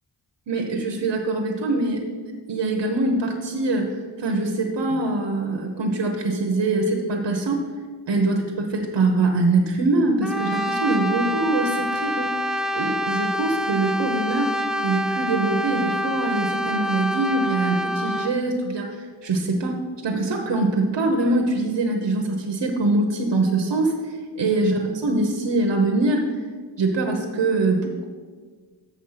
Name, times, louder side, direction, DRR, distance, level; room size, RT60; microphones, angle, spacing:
voice 1, 0.5-2.0 2.5-7.6 8.1-14.5 14.8-26.3 26.8-28.1, right 2 dB, 75° right, 2 dB, 1.0 m, -23 dB
Brass instrument, 10.2-18.4, equal, ahead, 0.3 m, -26 dB
7.2 x 6.3 x 5.7 m, 1.5 s
wide cardioid pair, 95°, 41 cm